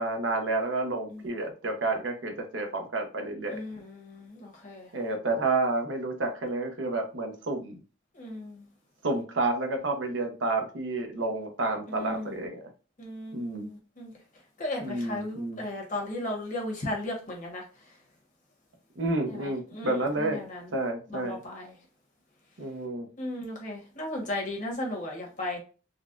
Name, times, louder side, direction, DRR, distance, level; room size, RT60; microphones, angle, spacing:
voice 1, 0.0-3.6 4.9-7.8 9.0-12.6 13.3-13.7 14.8-15.6 19.0-20.4 20.7-21.4 22.6-23.1, right 2 dB, 70° right, 0.8 m, -30 dB
voice 2, 3.5-4.9 8.1-8.6 11.9-12.3 13.0-14.1 14.6-17.6 19.3-19.9 20.3-20.6 21.1-21.7 23.2-25.6, left 1 dB, 45° left, 1.2 m, -35 dB
4.0 x 2.3 x 2.4 m
head